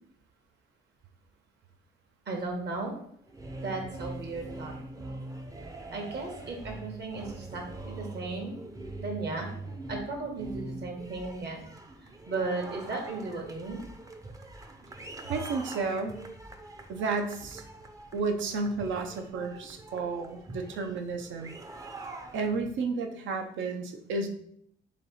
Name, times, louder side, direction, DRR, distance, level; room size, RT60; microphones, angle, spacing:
voice 1, 2.3-2.9 3.6-4.8 5.9-8.6 9.0-9.5 9.9-11.7 12.0-13.8, right 3 dB, 55° right, 2 dB, 1.2 m, -35 dB
sound 1, 3.3-22.8, right 2 dB, 15° right, 0.5 m, -43 dB
voice 2, 15.3-16.2 16.9-17.6 18.1-21.6 22.3-24.3, right 4 dB, 75° right, 5 dB, 0.6 m, -32 dB
3.2 x 2.8 x 4.1 m, 0.69 s
cardioid pair, 90°, 20 cm